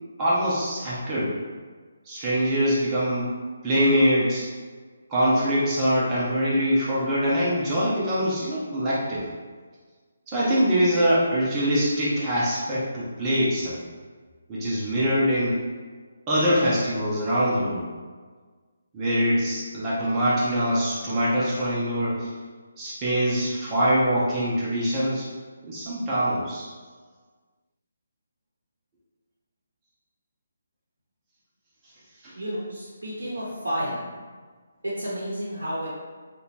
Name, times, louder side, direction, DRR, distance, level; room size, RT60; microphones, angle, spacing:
voice 1, 0.2-1.3 2.1-3.3 3.6-4.5 5.1-9.3 10.3-13.8 14.5-15.6 16.3-17.8 18.9-22.3 22.8-25.3 25.6-26.7 32.2-32.3, equal, 20° right, -8 dB, 0.6 m, -23 dB
voice 2, 32.4-34.0 34.8-35.9, equal, 75° right, -8 dB, 0.7 m, -31 dB
2.8 x 2.2 x 2.8 m, 1.5 s
figure-of-eight pair, 145°, 0 cm